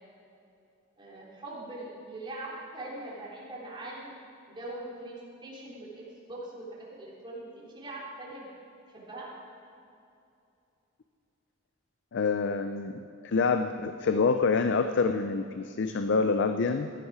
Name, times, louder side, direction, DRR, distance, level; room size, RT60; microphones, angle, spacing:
voice 1, 1.0-4.2 4.5-8.5 8.9-9.3, right 2 dB, 25° right, -6 dB, 3.2 m, -42 dB
voice 2, 12.1-12.9 13.2-16.9, left 4 dB, 60° left, 8 dB, 0.5 m, -26 dB
15.5 x 10.5 x 4.8 m, 2.7 s
head